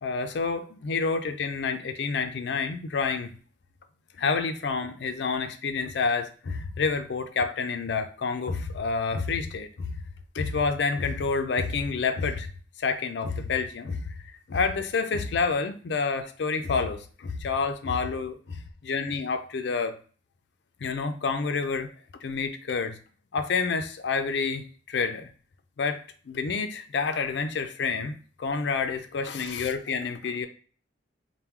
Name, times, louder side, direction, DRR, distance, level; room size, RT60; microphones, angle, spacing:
voice 1, 0.0-3.3 4.2-9.9 10.3-12.5 12.8-14.2 14.5-19.9 20.8-21.9 22.2-23.0 23.3-25.3 25.8-30.5, left 4 dB, 65° left, 8 dB, 0.4 m, -28 dB
4.4 x 2.1 x 3.6 m, 0.41 s
head